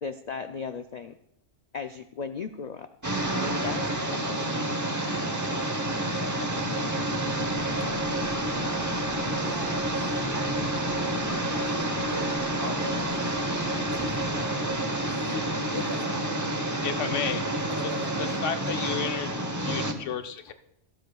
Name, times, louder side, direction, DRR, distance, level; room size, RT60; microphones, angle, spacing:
voice 1, 0.0-1.1 1.7-2.9 3.4-3.8 4.1-4.4, left 5 dB, 65° left, 8 dB, 0.4 m, -36 dB
sound 1, 3.0-19.9, right 1 dB, 15° right, 0.8 m, -29 dB
sound 2, 7.3-14.8, left 1 dB, 5° left, 1.9 m, -47 dB
voice 2, 9.2-10.0 10.3-10.5 11.2-13.5 13.9-15.1 15.7-16.2 17.7-18.1, right 2 dB, 75° right, 4 dB, 1.9 m, -41 dB
voice 3, 15.3-15.8 16.8-17.4 18.2-20.5, left 7 dB, 85° left, 7 dB, 1.1 m, -33 dB
15.0 x 13.0 x 2.3 m, 0.81 s
omnidirectional pair, 1.2 m